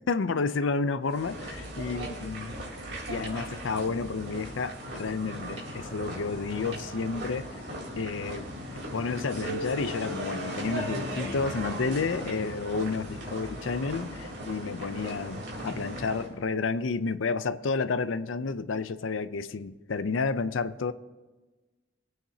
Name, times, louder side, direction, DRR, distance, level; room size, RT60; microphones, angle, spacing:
voice 1, 0.0-2.6 3.1-7.5 8.0-8.5 8.9-20.9, left 4 dB, 90° left, 0.6 m, -31 dB
sound 1, 1.1-16.3, right 1 dB, 65° right, 3.7 m, -38 dB
Keyboard (musical), 9.4-12.6, left 1 dB, 15° right, 1.6 m, -42 dB
23.5 x 9.1 x 2.8 m
head